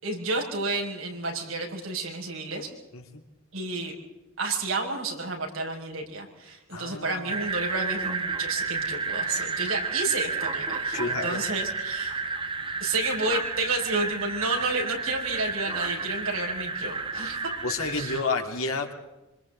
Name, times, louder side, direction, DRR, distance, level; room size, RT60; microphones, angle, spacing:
voice 1, 0.0-2.7 3.5-3.9 4.4-12.2 12.8-17.5 17.9-18.1, right 3 dB, 70° right, 1 dB, 5.7 m, -31 dB
voice 2, 6.7-7.3 10.9-11.4 17.6-18.9, left 3 dB, 80° left, 3 dB, 3.4 m, -30 dB
sound 1, 7.3-18.2, right 4 dB, 25° right, 1.6 m, -31 dB
26.5 x 26.5 x 3.9 m, 1.0 s
head